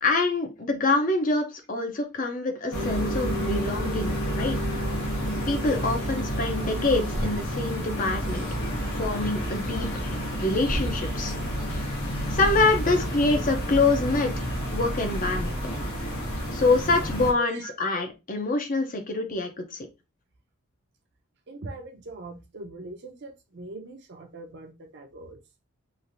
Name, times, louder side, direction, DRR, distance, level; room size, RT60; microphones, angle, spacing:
voice 1, 0.0-4.6 5.5-8.5 9.0-9.9 10.4-11.3 12.3-14.5 14.7-15.6 16.5-19.8, left 3 dB, 35° left, 5 dB, 0.5 m, -25 dB
sound 1, 2.7-17.3, equal, 70° left, 1.0 m, -29 dB
sound 2, 11.1-16.1, right 1 dB, 80° right, 1.0 m, -45 dB
voice 2, 21.5-25.4, right 2 dB, 50° right, 4 dB, 0.6 m, -42 dB
3.1 x 2.5 x 2.5 m, 0.26 s
head